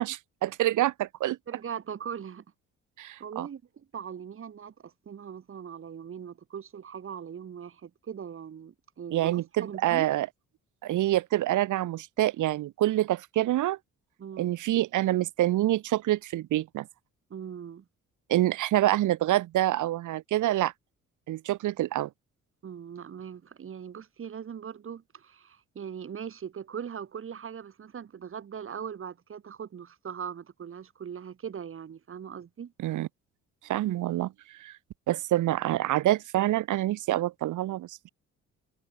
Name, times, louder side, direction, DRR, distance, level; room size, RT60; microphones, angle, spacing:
voice 1, 0.0-1.4 3.0-3.5 9.1-10.3 10.8-13.8 14.4-16.9 18.3-20.7 21.3-22.1 32.8-33.1 33.7-34.3 34.6-34.8 35.1-38.1, right 14 dB, 80° right, 1.8 m, -26 dB
voice 2, 1.5-2.4 3.2-10.1 14.2-14.6 17.3-17.8 22.6-32.7, right 8 dB, 45° right, 1.7 m, -40 dB
cardioid pair, 90°, 30 cm